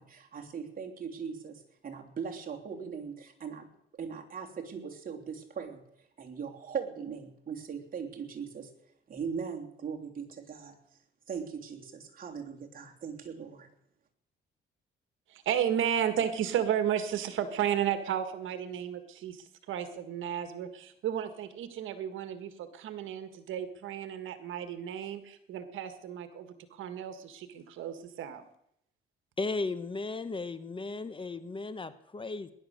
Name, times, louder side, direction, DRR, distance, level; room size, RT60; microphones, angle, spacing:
voice 1, 0.0-3.7 3.9-5.8 6.2-8.7 9.1-10.8 11.3-13.7, right 6 dB, 45° right, 1 dB, 3.2 m, -39 dB
voice 2, 15.3-28.5, right 9 dB, 80° right, 10 dB, 1.6 m, -33 dB
voice 3, 29.4-32.5, left 3 dB, 25° left, 13 dB, 1.1 m, -35 dB
19.0 x 11.5 x 6.6 m, 0.75 s
cardioid pair, 90°, 20 cm